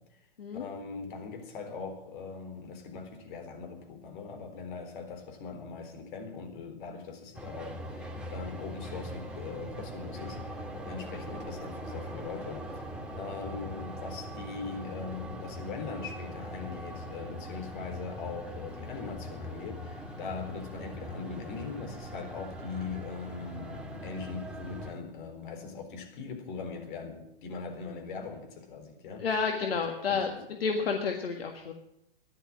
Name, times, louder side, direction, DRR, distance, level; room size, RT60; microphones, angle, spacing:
voice 1, 0.5-29.3 30.0-30.2, left 5 dB, 55° left, 3.9 m, -41 dB
sound 1, 7.3-24.9, equal, 5° right, 2.4 m, -41 dB
voice 2, 29.2-30.3 30.6-31.7, left 5 dB, 75° left, 1.8 m, -30 dB
15.0 x 11.0 x 7.4 m
hypercardioid pair, 110°, 30 cm